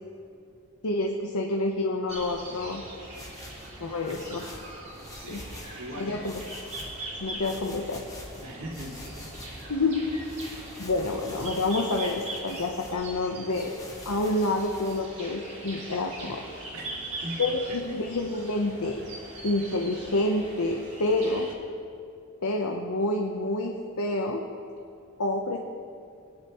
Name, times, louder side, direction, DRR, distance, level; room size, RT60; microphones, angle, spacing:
voice 1, 0.8-2.8 3.8-4.6 5.3-5.4 6.0-6.4 7.2-8.0 9.7-10.1 10.8-13.7 14.0-16.4 17.4-19.0 19.4-21.5 22.4-24.4 25.2-25.6, left 2 dB, 85° left, 1 dB, 0.9 m, -28 dB
sound 1, 2.1-21.5, right 2 dB, 30° right, 2.3 m, -41 dB
sound 2, 3.1-5.8 6.2-7.1 7.4-9.7 10.1-13.0 13.5-15.0, left 1 dB, 15° left, 1.1 m, -46 dB
voice 2, 4.1-4.5 5.2-5.5 5.8-6.2 8.4-9.3 16.7-17.4 17.7-17.8, right 1 dB, 85° right, -2 dB, 2.5 m, -40 dB
20.5 x 10.5 x 3.1 m, 2.6 s
head